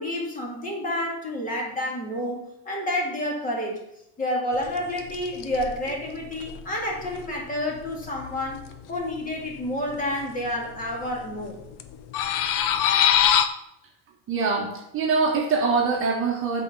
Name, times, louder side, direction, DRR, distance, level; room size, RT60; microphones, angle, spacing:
voice 1, 0.0-3.8 4.2-8.6 8.9-11.6, left 1 dB, 20° left, -1 dB, 2.1 m, -29 dB
sound 1, 4.5-4.7 5.0-8.8 9.1-9.2 9.5-10.5 10.8-11.5 11.7-13.5, left 9 dB, 55° left, 0.8 m, -24 dB
voice 2, 14.3-16.6, right 4 dB, 35° right, 0 dB, 1.2 m, -24 dB
8.2 x 4.4 x 6.6 m, 0.81 s
cardioid pair, 155°, 38 cm